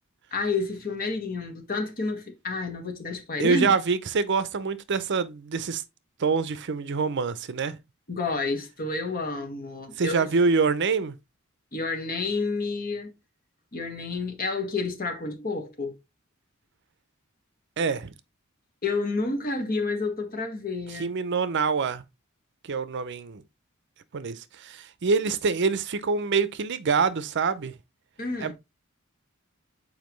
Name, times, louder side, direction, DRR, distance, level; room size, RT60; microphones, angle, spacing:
voice 1, 0.3-3.7 8.1-10.3 11.7-13.1 13.7-16.0 18.8-21.1 28.2-28.5, left 3 dB, 45° left, 1.6 m, -30 dB
voice 2, 3.4-5.8 6.2-7.8 10.0-11.2 17.8-18.1 20.9-22.0 22.6-23.4 24.1-27.7 28.4-28.5, right 4 dB, 60° right, 0.6 m, -25 dB
7.3 x 4.6 x 3.1 m
head